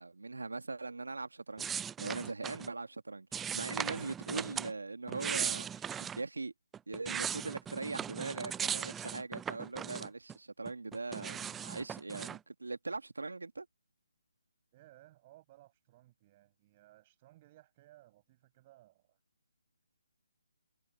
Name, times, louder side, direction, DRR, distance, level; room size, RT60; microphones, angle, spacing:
voice 1, 0.0-1.7 2.0-6.5 6.9-13.7, right 3 dB, 75° right, 1.8 m, -41 dB
sound 1, 1.6-2.7 3.3-4.7 5.1-6.2 6.7-10.3 10.6-12.4, right 8 dB, 10° right, 0.4 m, -38 dB
voice 2, 14.7-19.2, right 16 dB, 30° right, 6.4 m, -61 dB
figure-of-eight pair, 145°, 0 cm